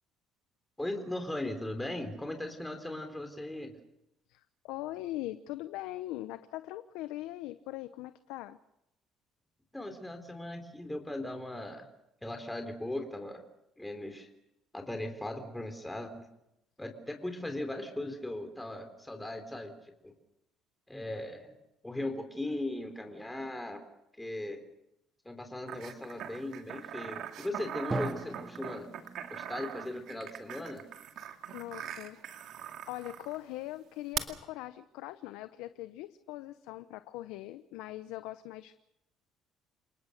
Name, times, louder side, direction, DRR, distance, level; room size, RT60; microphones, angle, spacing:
voice 1, 0.8-3.7 9.7-11.9 12.2-13.4 13.8-14.3 14.7-16.2 16.8-19.7 20.0-20.1 20.9-21.6 21.8-23.8 24.2-24.6 25.3-28.9 29.3-30.8, left 1 dB, 10° left, 5 dB, 3.7 m, -38 dB
voice 2, 4.3-8.6 31.5-32.2 32.9-38.8, left 16 dB, 85° left, 12 dB, 0.8 m, -41 dB
sound 1, 25.7-33.4 34.1-34.2, right 10 dB, 65° right, 2.3 m, -41 dB
Drum, 27.9-31.6, right 2 dB, 20° right, 2.3 m, -41 dB
29.0 x 19.0 x 6.6 m, 0.86 s
supercardioid pair, 85°, 0 cm